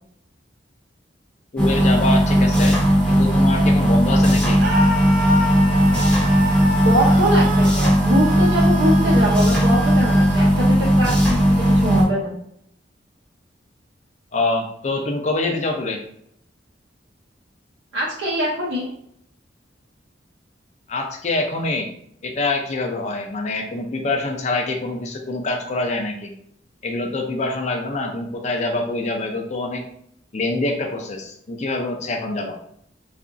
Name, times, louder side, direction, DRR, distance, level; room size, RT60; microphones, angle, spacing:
voice 1, 1.5-2.8 3.1-4.6 14.3-16.0 20.9-21.9 22.2-26.3 26.8-29.8 30.3-32.6, left 2 dB, 40° left, 3 dB, 0.5 m, -25 dB
sound 1, 1.6-12.0, equal, 5° left, 0.7 m, -17 dB
Screaming, 4.6-10.5, left 1 dB, 50° right, 0.6 m, -28 dB
voice 2, 6.7-12.3 17.9-18.9, equal, 85° right, -5 dB, 0.7 m, -23 dB
2.8 x 2.5 x 2.4 m, 0.70 s
head